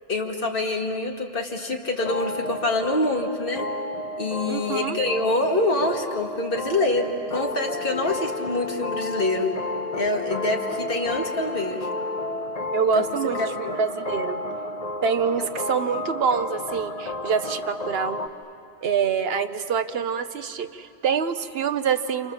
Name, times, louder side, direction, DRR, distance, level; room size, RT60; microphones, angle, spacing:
voice 1, 0.1-3.7 4.2-9.5 9.9-11.9 13.0-13.1 13.6-13.7 15.4-15.5, left 2 dB, 55° left, 1 dB, 2.2 m, -26 dB
sound 1, 2.0-18.3, left 2 dB, 40° left, 1.0 m, -32 dB
voice 2, 4.5-5.0 12.7-14.4 15.0-18.2 18.8-22.3, right 6 dB, 70° right, 9 dB, 1.1 m, -26 dB
29.0 x 28.0 x 7.2 m, 2.7 s
omnidirectional pair, 1.1 m